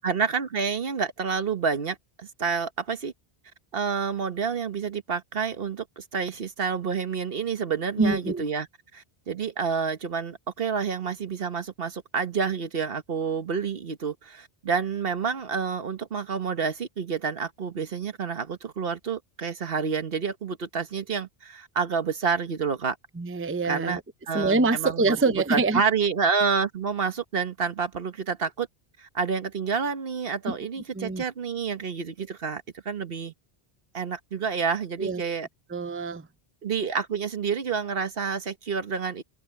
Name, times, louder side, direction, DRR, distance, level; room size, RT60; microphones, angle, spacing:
voice 1, 0.0-3.1 3.7-8.7 8.9-23.0 23.6-24.0 24.3-28.7 29.0-33.3 33.9-35.5 36.6-39.2, right 6 dB, 65° right, 1.4 m, -29 dB
voice 2, 8.0-8.4 23.2-24.0 24.3-25.8 30.5-30.6 30.9-31.2 35.0-35.2 35.7-36.3, right 3 dB, 15° right, 0.6 m, -25 dB
omnidirectional pair, 1.1 m